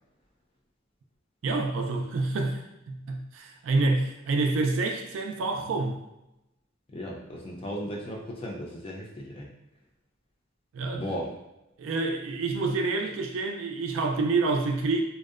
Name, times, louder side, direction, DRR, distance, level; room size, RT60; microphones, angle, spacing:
voice 1, 1.4-6.0 10.7-11.1 11.8-15.0, right 3 dB, 70° right, 3 dB, 0.3 m, -27 dB
voice 2, 6.9-9.5 11.0-11.3, equal, 30° left, -1 dB, 0.4 m, -36 dB
2.6 x 2.0 x 2.4 m, 0.91 s
head